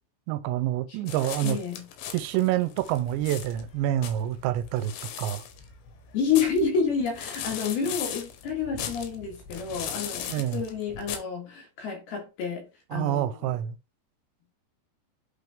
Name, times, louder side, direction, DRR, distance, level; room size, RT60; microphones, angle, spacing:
voice 1, 0.3-1.6 2.1-4.9 5.2-5.4 10.3-10.6 12.9-13.8, right 13 dB, 85° right, 2.8 m, -27 dB
sound 1, 1.1-11.2, left 9 dB, 85° left, 3.3 m, -38 dB
voice 2, 1.4-1.9 6.1-13.5, left 6 dB, 65° left, 3.4 m, -29 dB
8.3 x 4.0 x 3.5 m
omnidirectional pair, 5.1 m